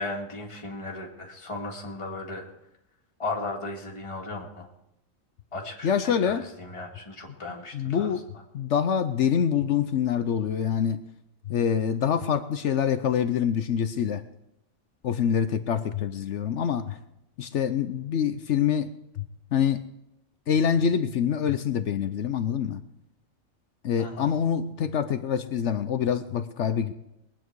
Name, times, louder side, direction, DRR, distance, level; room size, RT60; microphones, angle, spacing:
voice 1, 0.0-2.4 3.2-4.7 5.5-8.1 24.0-24.3, left 2 dB, 20° left, -1 dB, 2.1 m, -36 dB
voice 2, 5.8-6.4 7.7-8.2 8.5-11.0 11.5-14.2 15.0-17.0 17.4-19.3 19.5-19.8 20.5-22.8 23.8-26.9, left 8 dB, 65° left, 11 dB, 1.0 m, -25 dB
21.5 x 9.1 x 4.7 m, 0.85 s
omnidirectional pair, 1.4 m